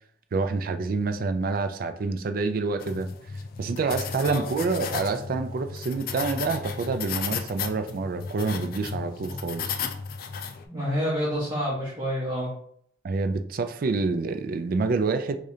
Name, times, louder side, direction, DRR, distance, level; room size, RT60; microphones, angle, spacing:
voice 1, 0.3-3.1 3.6-9.8 13.0-15.4, right 4 dB, 45° right, 8 dB, 0.3 m, -27 dB
sound 1, 2.8-10.6, left 6 dB, 50° left, 0.3 m, -34 dB
voice 2, 10.7-12.5, equal, 20° right, -10 dB, 1.1 m, -28 dB
4.8 x 2.4 x 2.7 m, 0.65 s
head